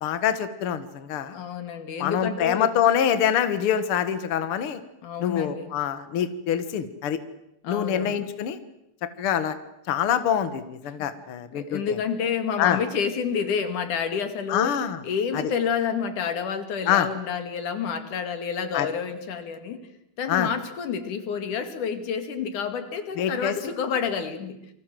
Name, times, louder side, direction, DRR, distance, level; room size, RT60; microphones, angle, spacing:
voice 1, 0.0-1.4 2.0-4.8 5.2-7.2 7.7-8.6 9.2-9.6 9.9-12.0 12.6-12.8 14.5-15.0 15.3-15.5 16.9-17.1 18.7-18.9 20.3-20.5 23.2-23.5, left 9 dB, 50° left, 11 dB, 2.1 m, -25 dB
voice 2, 1.3-2.7 5.0-5.7 7.6-8.2 11.5-14.7 15.0-19.8 20.2-24.6, left 7 dB, 85° left, 8 dB, 3.8 m, -29 dB
29.0 x 24.5 x 7.7 m, 0.80 s
omnidirectional pair, 3.5 m